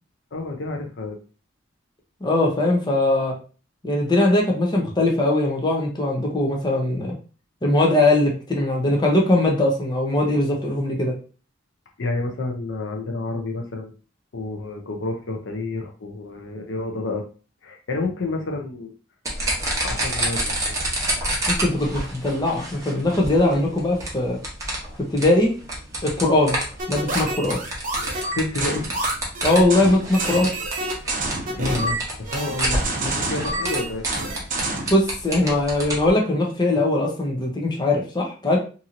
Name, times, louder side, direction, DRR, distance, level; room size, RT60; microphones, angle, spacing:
voice 1, 0.3-1.2 12.0-13.9 14.3-17.2 17.6-18.9 19.8-20.8 28.3-28.9 31.5-34.1, left 2 dB, 65° left, 3 dB, 0.6 m, -29 dB
voice 2, 2.2-3.3 3.8-7.2 7.6-11.1 21.6-24.4 25.1-25.5 26.0-26.6 26.9-27.6 29.4-30.5 34.9-38.6, left 1 dB, 20° left, -1 dB, 0.6 m, -20 dB
sound 1, 19.2-36.1, right 1 dB, 15° right, 0.9 m, -29 dB
sound 2, 26.8-35.0, right 2 dB, 45° right, 0.7 m, -28 dB
2.8 x 2.7 x 2.5 m, 0.36 s
head